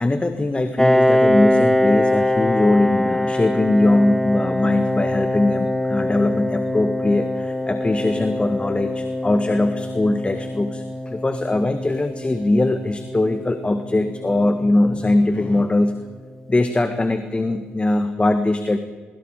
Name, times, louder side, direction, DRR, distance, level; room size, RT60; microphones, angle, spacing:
voice 1, 0.0-16.0 16.5-18.8, left 2 dB, 20° left, 9 dB, 1.7 m, -21 dB
Piano, 0.8-16.1, left 1 dB, 5° left, 1.6 m, -23 dB
24.0 x 24.0 x 5.0 m, 1.4 s
hypercardioid pair, 50°, 5 cm